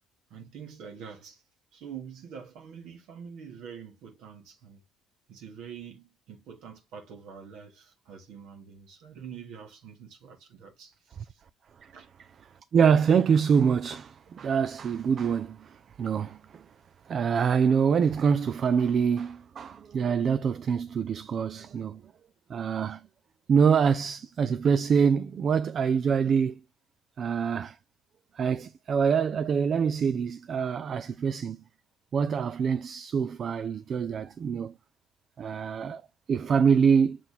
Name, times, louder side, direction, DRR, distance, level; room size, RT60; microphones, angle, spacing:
voice 1, 0.3-1.4 1.7-4.8 5.3-11.4 11.9-12.1, right 7 dB, 60° right, 1.4 m, -45 dB
voice 2, 12.7-16.6 17.1-22.0 22.5-23.0 23.5-26.6 27.2-27.8 28.4-31.6 32.1-34.7 35.4-36.0 36.3-37.2, right 6 dB, 45° right, 0.4 m, -25 dB
6.7 x 3.7 x 4.0 m
figure-of-eight pair, 50°, 0 cm